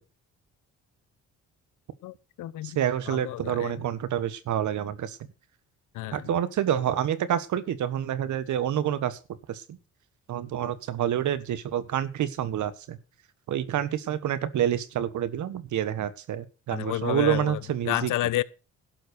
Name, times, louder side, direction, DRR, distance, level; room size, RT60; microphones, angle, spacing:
voice 1, 2.0-2.8 3.1-3.8 5.9-6.3 16.7-18.4, left 15 dB, 85° left, 0.9 m, -30 dB
voice 2, 2.6-5.2 6.1-9.2 9.5-9.8 10.3-13.0 13.5-18.1, right 10 dB, 70° right, 1.5 m, -28 dB
12.5 x 7.6 x 6.5 m
cardioid pair, 90°, 30 cm